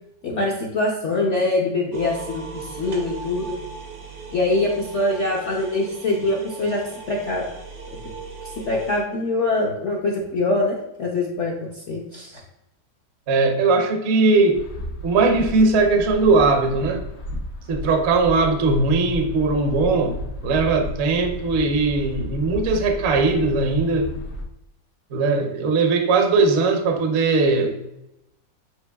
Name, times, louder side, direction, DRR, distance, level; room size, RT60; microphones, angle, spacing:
voice 1, 0.2-3.5 4.3-6.8 7.1-7.5 8.6-12.3, left 2 dB, 65° left, -3 dB, 0.7 m, -23 dB
sound 1, 1.9-9.0, right 5 dB, 85° right, 1.7 m, -38 dB
voice 2, 13.3-14.6 15.0-17.0 17.7-20.2 20.4-24.1 25.1-27.9, right 3 dB, 60° right, 4 dB, 0.7 m, -19 dB
sound 2, 14.5-24.4, left 1 dB, 85° left, 1.5 m, -33 dB
7.8 x 3.0 x 2.3 m, 0.86 s
omnidirectional pair, 2.0 m